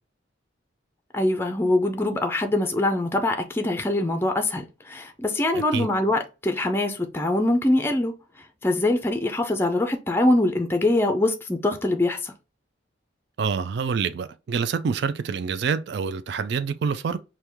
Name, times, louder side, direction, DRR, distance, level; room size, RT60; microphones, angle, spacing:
voice 1, 1.1-8.1 8.6-12.3, left 1 dB, 10° left, 0.4 m, -23 dB
voice 2, 5.5-5.9 13.4-17.2, right 6 dB, 60° right, 0.3 m, -27 dB
4.5 x 2.2 x 3.4 m
head